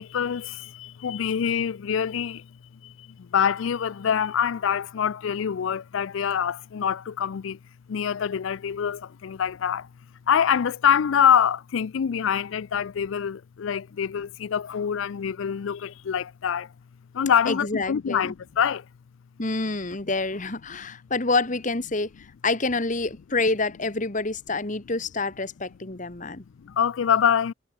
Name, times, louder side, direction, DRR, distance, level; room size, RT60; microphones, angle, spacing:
voice 1, 0.0-2.5 2.8-7.6 7.9-9.9 10.3-16.7 17.1-18.8 26.6-27.5, left 8 dB, 70° left, 0.4 m, -25 dB
voice 2, 17.5-18.3 19.4-22.1 22.4-26.4, left 3 dB, 40° left, 1.6 m, -27 dB
head